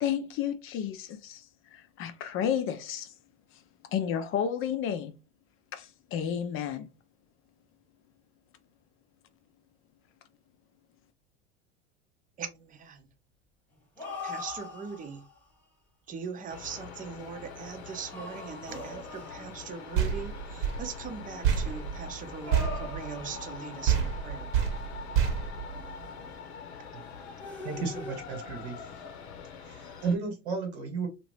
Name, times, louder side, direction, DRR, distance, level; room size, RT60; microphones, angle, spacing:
voice 1, 0.0-3.1 3.9-5.1 5.7-6.9, left 9 dB, 40° left, 0.5 m, -32 dB
voice 2, 12.4-13.1 14.2-15.2 16.1-24.5, right 6 dB, 25° right, 0.6 m, -40 dB
sound 1, 13.7-15.4 16.3-16.9 17.9-19.8 21.5-24.0 25.7-26.5 27.4-28.1, left 3 dB, 5° left, 1.0 m, -42 dB
sound 2, 16.5-30.2, left 6 dB, 75° left, 0.8 m, -44 dB
sound 3, 19.9-23.6 23.9-26.3, right 8 dB, 55° right, 1.0 m, -29 dB
voice 3, 27.6-28.9 29.6-31.1, right 4 dB, 80° right, 1.3 m, -33 dB
2.8 x 2.5 x 3.1 m
hypercardioid pair, 80°, 33 cm